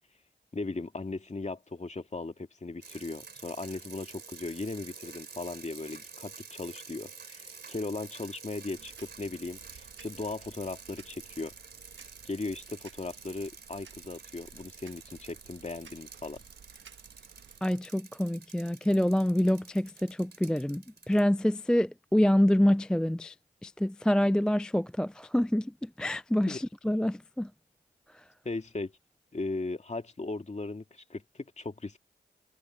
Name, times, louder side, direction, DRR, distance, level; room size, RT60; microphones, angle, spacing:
voice 1, 0.5-11.5 12.2-16.4 26.5-26.6 28.4-28.9 29.3-32.0, left 3 dB, 35° left, 2.3 m, -37 dB
sound 1, 2.8-21.2, right 5 dB, 65° right, 3.3 m, -49 dB
sound 2, 8.7-17.6, right 7 dB, 85° right, 1.3 m, -56 dB
voice 2, 17.6-23.3 23.6-27.5, left 1 dB, 5° left, 0.3 m, -26 dB
cardioid pair, 50°, 19 cm